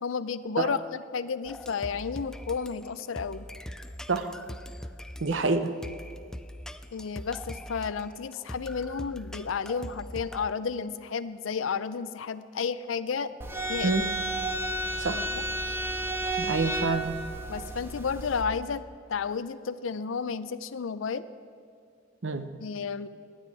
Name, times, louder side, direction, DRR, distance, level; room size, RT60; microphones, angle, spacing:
voice 1, 0.0-3.5 6.9-13.3 13.7-14.0 15.3-15.4 17.5-18.8 19.1-21.3 22.6-23.1, left 5 dB, 85° left, 15 dB, 0.5 m, -32 dB
sound 1, 1.4-10.5, equal, 5° left, 0.3 m, -42 dB
voice 2, 5.2-5.7 13.8-14.1 15.0-15.3 16.4-17.1 22.2-22.5, right 3 dB, 70° right, 10 dB, 0.8 m, -27 dB
sound 2, 13.4-18.4, right 1 dB, 10° right, 0.8 m, -32 dB
16.0 x 10.5 x 4.8 m, 2.4 s
head